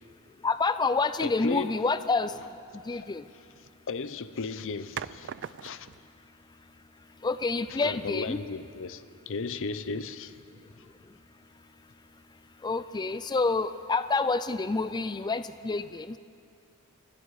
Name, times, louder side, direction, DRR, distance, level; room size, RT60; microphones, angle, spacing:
voice 1, 0.4-2.3 2.9-3.2 7.2-8.4 12.6-16.2, left 3 dB, 20° left, 0.4 m, -28 dB
sound 1, 0.9-1.3 3.4-3.8 4.9-6.1, right 8 dB, 55° right, 0.4 m, -40 dB
voice 2, 1.2-1.7 2.8-3.1 3.9-5.9 7.8-10.4 10.8-10.9, left 4 dB, 60° left, 0.7 m, -35 dB
29.0 x 20.5 x 4.9 m
head